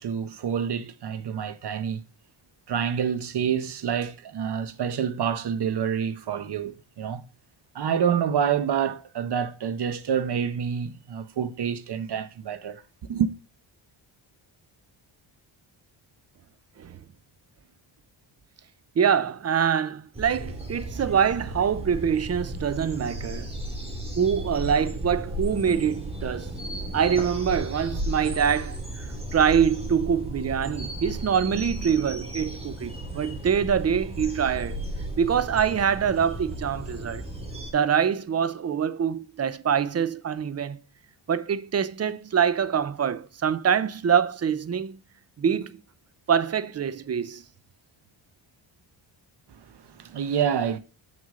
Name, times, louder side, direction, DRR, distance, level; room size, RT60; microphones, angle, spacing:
voice 1, 0.0-2.0 2.7-7.2 7.7-12.8 13.1-13.3 49.5-50.8, right 8 dB, 55° right, 1.0 m, -27 dB
voice 2, 19.0-23.5 24.2-26.5 26.9-29.1 29.3-34.8 35.2-37.2 37.7-40.8 41.3-45.0 45.4-45.8 46.3-47.4, right 7 dB, 30° right, 0.6 m, -25 dB
sound 1, 20.1-37.7, right 1 dB, 10° right, 2.3 m, -34 dB
7.1 x 6.4 x 3.7 m
cardioid pair, 115°, 48 cm